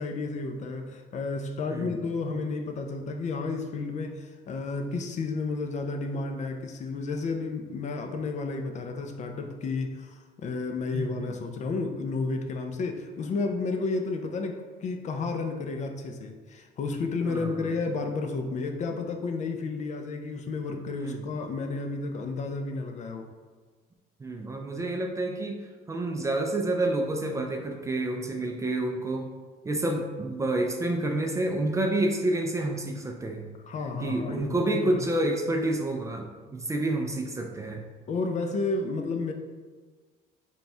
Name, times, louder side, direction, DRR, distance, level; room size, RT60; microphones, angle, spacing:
voice 1, 0.0-23.3 33.7-35.1 38.1-39.3, left 3 dB, 45° left, 4 dB, 0.4 m, -32 dB
voice 2, 1.7-2.0 10.9-11.3 17.3-17.7 21.0-21.2 24.2-25.6 25.9-29.3 29.6-33.5 34.0-37.8, right 2 dB, 20° right, 2 dB, 0.4 m, -29 dB
3.4 x 2.3 x 4.2 m, 1.4 s
cardioid pair, 110°, 17 cm